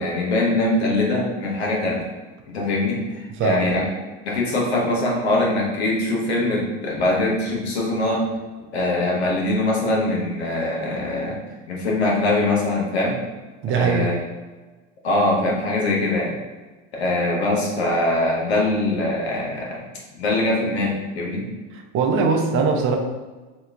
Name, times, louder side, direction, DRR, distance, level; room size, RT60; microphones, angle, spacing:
voice 1, 0.0-2.0 2.5-3.9 4.3-8.3 8.7-11.4 11.7-13.2 13.7-14.2 15.0-16.4 16.9-19.8 20.1-21.4, left 2 dB, 90° left, -2 dB, 1.0 m, -22 dB
voice 2, 3.4-3.7 13.6-14.1 21.9-23.0, right 4 dB, 40° right, 3 dB, 0.6 m, -20 dB
2.9 x 2.3 x 3.4 m, 1.2 s
supercardioid pair, 100°, 31 cm